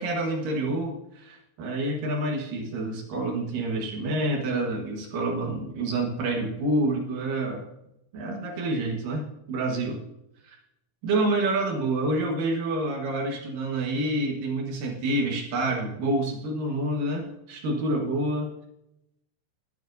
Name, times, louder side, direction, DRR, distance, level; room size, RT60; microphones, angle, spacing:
voice 1, 0.0-7.7 8.1-10.0 10.4-10.6 11.0-18.5, right 2 dB, 60° right, 1 dB, 2.4 m, -28 dB
21.0 x 9.1 x 2.7 m, 0.84 s
omnidirectional pair, 5.5 m